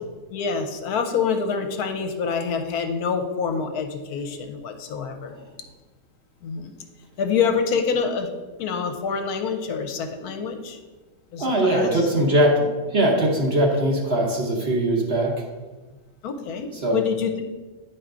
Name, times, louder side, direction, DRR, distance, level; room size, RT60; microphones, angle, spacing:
voice 1, 0.3-5.3 6.4-6.7 7.2-8.3 8.6-10.8 11.3-12.1 16.2-17.4, left 6 dB, 75° left, 6 dB, 1.1 m, -26 dB
voice 2, 11.4-15.3 16.7-17.0, right 1 dB, 45° right, 0 dB, 1.1 m, -21 dB
9.2 x 4.7 x 3.7 m, 1.3 s
omnidirectional pair, 1.7 m